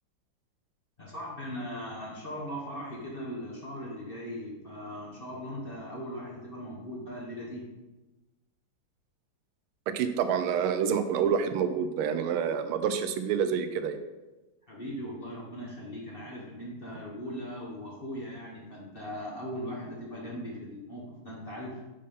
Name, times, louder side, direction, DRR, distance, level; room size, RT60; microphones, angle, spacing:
voice 1, 1.0-7.7 14.7-21.8, equal, 35° left, -4 dB, 1.0 m, -39 dB
voice 2, 9.9-14.0, right 7 dB, 85° right, 9 dB, 1.5 m, -28 dB
5.5 x 5.1 x 5.3 m, 1.1 s
omnidirectional pair, 2.3 m